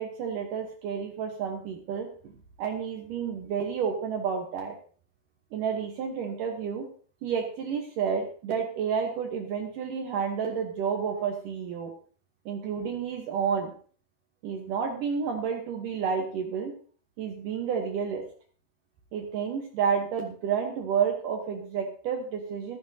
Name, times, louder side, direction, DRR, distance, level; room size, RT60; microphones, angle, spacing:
voice 1, 0.0-2.1 2.6-4.8 5.5-6.9 7.2-11.9 12.5-13.7 14.4-16.7 17.2-18.2 19.1-22.8, right 6 dB, 65° right, 2 dB, 2.3 m, -30 dB
15.5 x 12.5 x 2.8 m, 0.43 s
omnidirectional pair, 4.8 m